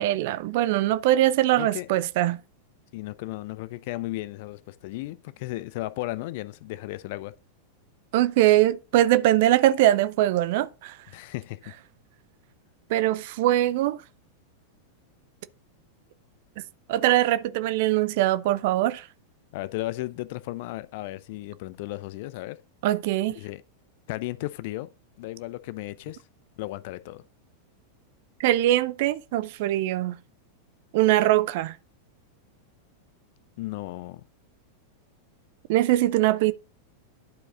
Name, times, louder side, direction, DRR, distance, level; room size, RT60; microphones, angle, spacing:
voice 1, 0.0-2.4 8.1-10.9 12.9-14.0 16.9-19.0 22.8-23.4 28.4-30.2 30.9-31.7 35.7-36.5, right 14 dB, 50° right, 0.5 m, -22 dB
voice 2, 1.6-1.9 2.9-7.4 11.1-11.7 19.5-22.6 23.3-23.6 24.1-24.9 25.2-26.2 26.6-27.2 33.6-34.2, left 18 dB, 50° left, 0.5 m, -35 dB
11.5 x 4.8 x 3.8 m
figure-of-eight pair, 90°, 0 cm